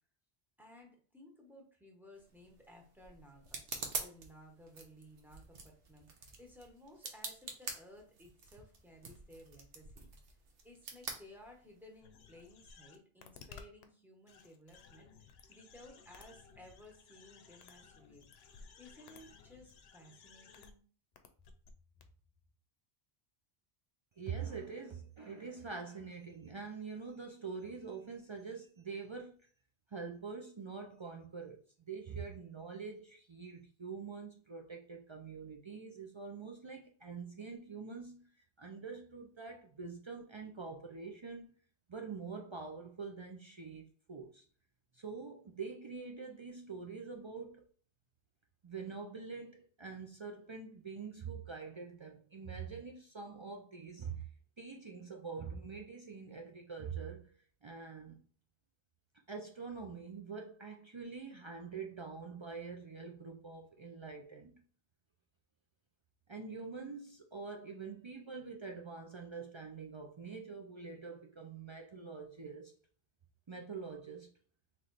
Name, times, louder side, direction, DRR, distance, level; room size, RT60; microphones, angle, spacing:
voice 1, 0.6-10.1 10.6-18.3 18.8-20.8, left 1 dB, ahead, 0.9 m, -57 dB
sound 1, 2.1-12.0, right 4 dB, 65° right, 0.9 m, -47 dB
sound 2, 12.0-13.8 14.3-20.7 21.2-21.7 22.0-22.1, left 6 dB, 80° left, 0.8 m, -57 dB
voice 2, 24.2-29.5 29.9-38.3 38.6-41.5 41.9-44.5 44.9-47.7 48.6-54.3 54.6-57.3 57.6-58.2 59.3-64.6 66.3-72.7 73.5-74.3, right 5 dB, 45° right, 0.4 m, -45 dB
3.1 x 3.0 x 3.9 m
omnidirectional pair, 1.1 m